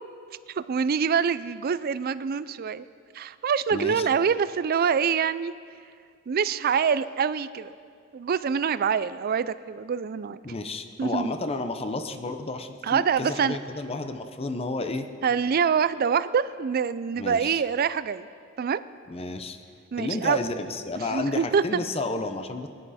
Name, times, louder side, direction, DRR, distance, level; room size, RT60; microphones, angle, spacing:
voice 1, 0.5-2.9 3.1-5.5 6.3-7.7 8.1-10.4 11.0-11.3 12.8-13.6 15.2-18.3 18.6-18.8 19.9-20.4 21.1-21.6, right 6 dB, 45° right, 15 dB, 0.4 m, -25 dB
voice 2, 3.7-4.1 10.4-15.1 17.2-17.6 19.1-19.6 20.0-22.7, left 2 dB, 30° left, 8 dB, 0.7 m, -31 dB
20.0 x 10.0 x 4.2 m, 2.3 s
head